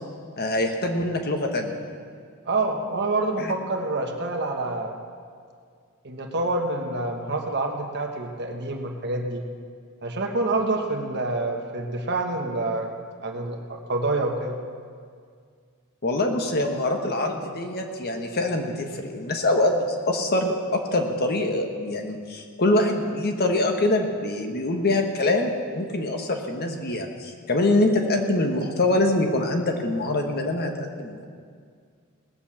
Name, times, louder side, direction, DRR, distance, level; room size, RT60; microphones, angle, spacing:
voice 1, 0.4-1.8 3.4-3.5 16.0-31.3, left 2 dB, 45° left, 4 dB, 1.3 m, -24 dB
voice 2, 2.5-4.9 6.0-9.5 10.0-12.9 13.2-14.6, right 2 dB, 50° right, 3 dB, 1.3 m, -27 dB
18.5 x 7.1 x 7.2 m, 2.1 s
head